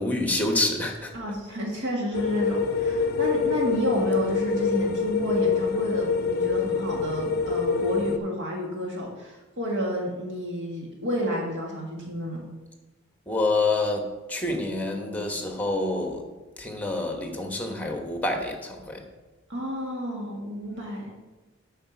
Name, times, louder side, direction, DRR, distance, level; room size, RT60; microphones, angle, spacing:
voice 1, 0.0-1.1 13.3-16.3 16.6-19.0, left 2 dB, 10° left, 2 dB, 1.2 m, -27 dB
voice 2, 1.1-12.4 19.5-21.1, equal, 60° right, -2 dB, 1.8 m, -30 dB
sound 1, 2.1-8.2, left 5 dB, 50° left, 0.4 m, -25 dB
8.9 x 5.8 x 4.5 m, 1.1 s
head